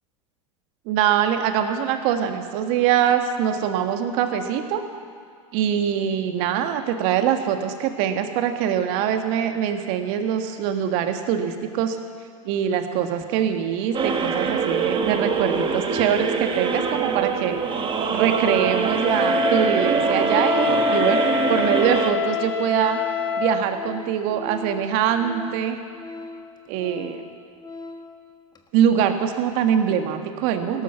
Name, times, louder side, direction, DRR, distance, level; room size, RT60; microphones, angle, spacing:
voice 1, 0.9-4.8 5.5-12.0 12.4-17.6 18.1-23.0 23.4-25.8 26.7-27.2 28.7-30.8, right 9 dB, 55° right, 6 dB, 1.6 m, -23 dB
sound 1, 13.9-22.1, right 5 dB, 30° right, 1.6 m, -24 dB
Organ, 18.2-18.4 18.6-28.2 28.5-28.7, left 3 dB, 20° left, 1.5 m, -40 dB
Wind instrument woodwind instrument, 19.0-23.6, left 4 dB, 5° left, 4.8 m, -25 dB
17.0 x 12.0 x 7.0 m, 2.1 s
hypercardioid pair, 100°, 18 cm